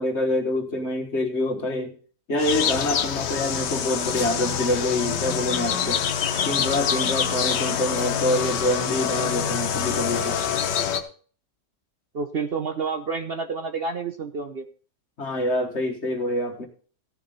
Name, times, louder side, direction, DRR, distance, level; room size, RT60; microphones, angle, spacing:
voice 1, 0.0-1.9 2.3-6.0 6.4-10.4 15.2-16.7, left 1 dB, 45° left, 4 dB, 1.7 m, -26 dB
sound 1, 2.4-11.0, left 7 dB, 85° left, 1.6 m, -26 dB
voice 2, 12.1-14.7, right 4 dB, 50° right, 8 dB, 0.7 m, -29 dB
15.5 x 6.9 x 4.1 m, 0.42 s
omnidirectional pair, 1.8 m